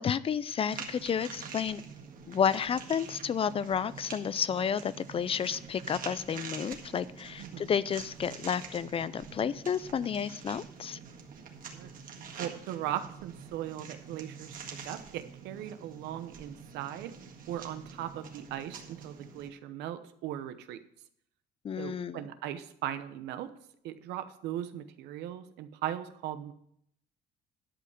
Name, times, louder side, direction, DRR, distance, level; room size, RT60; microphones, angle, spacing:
voice 1, 0.0-1.8 2.3-11.0 21.6-22.2, left 7 dB, 35° left, 17 dB, 0.4 m, -31 dB
sound 1, 0.7-19.5, right 6 dB, 55° right, 1.8 m, -46 dB
voice 2, 7.4-7.7 11.7-11.9 12.4-14.6 14.8-17.1 17.5-20.8 21.8-23.5 23.8-26.5, right 11 dB, 85° right, 11 dB, 0.9 m, -38 dB
11.5 x 5.5 x 6.6 m, 0.71 s
cardioid pair, 110°, 17 cm